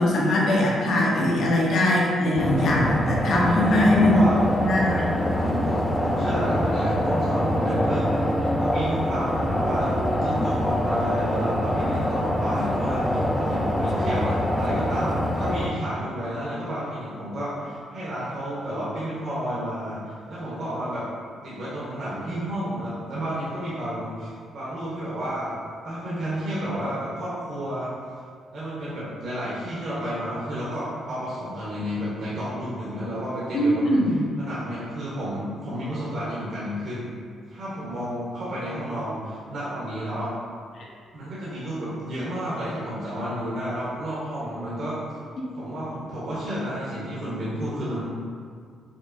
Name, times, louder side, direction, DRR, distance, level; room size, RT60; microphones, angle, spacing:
voice 1, 0.0-4.2 4.6-5.1 33.5-34.2, left 1 dB, 65° left, -4 dB, 0.7 m, -21 dB
sound 1, 2.4-15.7, equal, 10° left, 0.3 m, -25 dB
voice 2, 3.4-4.4 5.3-9.9 10.2-21.1 21.4-25.6 25.8-27.9 28.5-34.0 34.4-37.1 37.5-40.3 41.1-45.0 45.5-48.0, equal, 65° right, -9 dB, 0.8 m, -31 dB
5.1 x 2.0 x 2.5 m, 2.1 s
cardioid pair, 90°, 0 cm